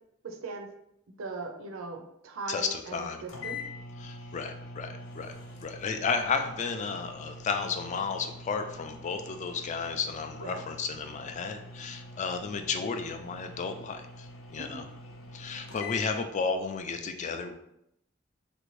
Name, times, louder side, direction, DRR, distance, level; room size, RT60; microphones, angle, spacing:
voice 1, 0.2-0.7 1.2-3.6 10.4-10.6 14.6-14.9, right 3 dB, 80° right, 4 dB, 0.5 m, -39 dB
voice 2, 2.5-3.2 4.0-5.3 5.6-14.3 14.5-14.9 15.3-17.5, left 5 dB, 35° left, 7 dB, 0.3 m, -33 dB
sound 1, 2.9-3.0 3.3-16.1, left 2 dB, 85° left, 0.6 m, -45 dB
3.3 x 2.5 x 3.1 m, 0.79 s
head